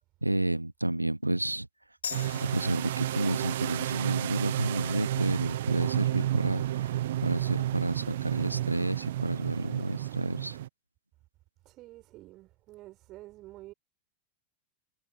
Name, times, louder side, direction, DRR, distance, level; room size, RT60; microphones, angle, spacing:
voice 1, 0.2-1.7 2.5-6.9 7.2-10.6, right 1 dB, 85° right, 1.1 m, -30 dB
sound 1, 2.0-9.1, left 7 dB, 70° left, 6.0 m, -47 dB
sound 2, 2.1-10.7, right 13 dB, 55° right, 0.7 m, -31 dB
voice 2, 11.6-13.7, right 17 dB, 35° right, 4.2 m, -49 dB
figure-of-eight pair, 90°, 0 cm